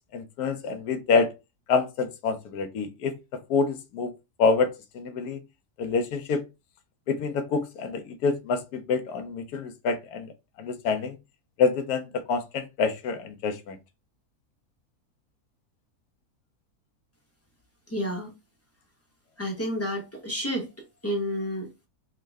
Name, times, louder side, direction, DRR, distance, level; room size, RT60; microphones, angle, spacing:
voice 1, 0.1-1.3 1.7-4.1 4.4-5.4 5.8-6.4 7.1-10.3 10.6-11.2 11.6-13.8, left 4 dB, 85° left, 1.1 m, -27 dB
voice 2, 17.9-18.3 19.4-20.7 21.0-21.7, equal, 15° left, 0.5 m, -30 dB
3.6 x 2.1 x 3.3 m
omnidirectional pair, 1.6 m